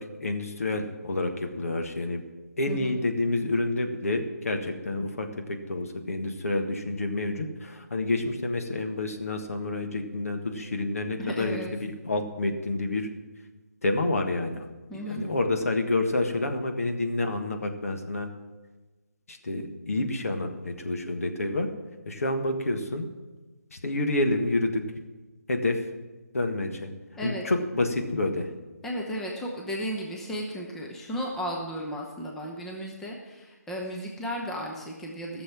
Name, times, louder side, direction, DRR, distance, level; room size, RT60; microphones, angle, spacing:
voice 1, 0.2-2.2 2.6-13.1 13.8-14.6 14.9-18.3 19.3-21.7 22.0-23.1 23.7-24.8 25.5-25.8 26.3-26.9 27.2-28.5, left 2 dB, 60° left, 4 dB, 1.5 m, -28 dB
voice 2, 11.2-11.7 14.9-15.2 27.2-27.4 28.8-35.4, equal, 5° left, -2 dB, 0.9 m, -34 dB
14.5 x 6.9 x 7.4 m, 1.2 s
figure-of-eight pair, 150°, 9 cm